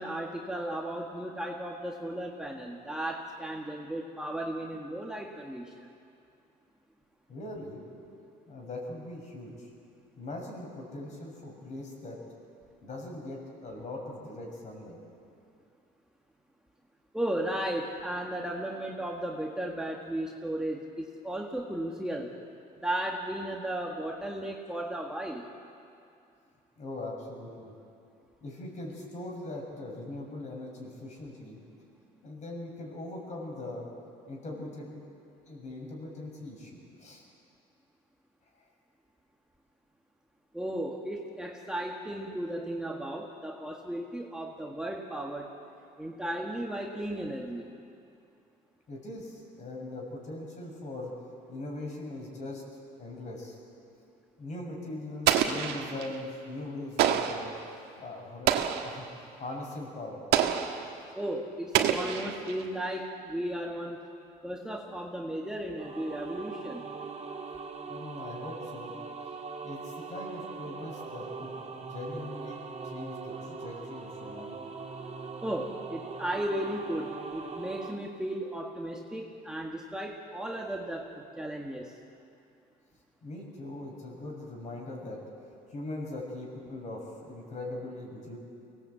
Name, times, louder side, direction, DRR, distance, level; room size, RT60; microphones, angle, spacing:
voice 1, 0.0-5.9 17.1-22.3 22.8-25.5 40.5-45.6 46.0-47.7 61.2-64.0 64.4-66.9 75.4-81.9, right 1 dB, 5° right, -1 dB, 1.7 m, -35 dB
voice 2, 7.3-7.8 8.5-9.7 10.1-12.2 12.8-15.0 26.8-27.7 28.4-31.6 32.2-33.9 34.3-34.9 35.5-37.2 48.9-51.1 51.5-52.6 53.0-53.6 54.4-57.5 58.0-58.5 58.8-59.0 59.4-60.2 67.9-69.0 69.6-74.6 83.2-85.2 85.7-88.4, left 2 dB, 45° left, 0 dB, 6.7 m, -40 dB
Explosion, 55.3-56.2 57.0-57.5 58.5-59.0 60.3-60.9 61.7-62.6, right 9 dB, 90° right, 1.5 m, -27 dB
sound 1, 65.7-77.9, right 4 dB, 35° right, 3.7 m, -41 dB
24.0 x 18.5 x 8.3 m, 2.5 s
cardioid pair, 110°, 17 cm